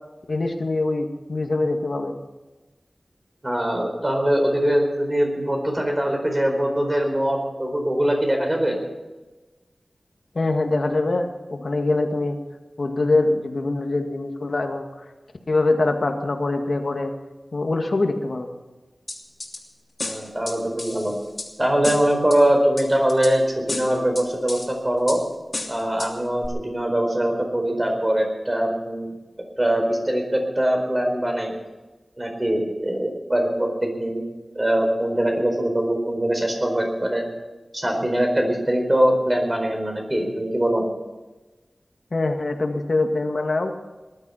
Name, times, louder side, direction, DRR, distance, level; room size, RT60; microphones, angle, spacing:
voice 1, 0.3-2.2 10.4-12.4 12.8-14.9 15.5-17.1 17.5-18.5 42.1-43.7, left 2 dB, 60° left, 4 dB, 1.9 m, -23 dB
voice 2, 3.4-8.8 20.0-21.1 21.6-23.4 23.7-25.2 25.7-29.1 29.6-31.5 32.2-34.2 34.5-37.2 37.7-40.8, right 1 dB, 25° right, 2 dB, 4.5 m, -22 dB
sound 1, 19.1-19.6 20.0-21.5 21.8-22.4 22.8-23.3 23.7-24.7 25.1-25.2 25.5-26.1 26.4-26.5, left 2 dB, 45° left, 3.0 m, -31 dB
19.5 x 12.0 x 5.7 m, 1.2 s
wide cardioid pair, 85°, 0 cm